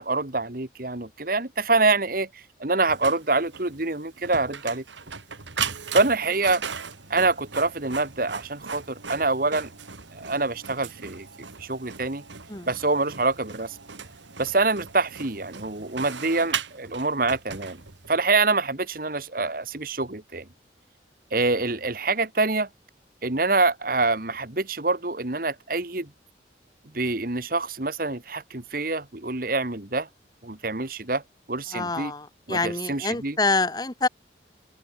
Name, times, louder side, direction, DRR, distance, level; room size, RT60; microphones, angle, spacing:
voice 1, 0.0-4.8 5.9-6.6 7.1-9.7 10.1-11.3 11.6-12.2 12.7-13.8 14.4-17.8 18.1-20.5 21.3-22.7 23.2-26.1 26.9-30.1 30.4-31.2 31.5-32.1 32.5-33.4, right 3 dB, 50° right, 1.8 m, -25 dB
Printer, 2.9-18.2, right 6 dB, 90° right, 2.5 m, -37 dB
voice 2, 31.7-34.1, left 3 dB, 20° left, 1.2 m, -26 dB
open air
head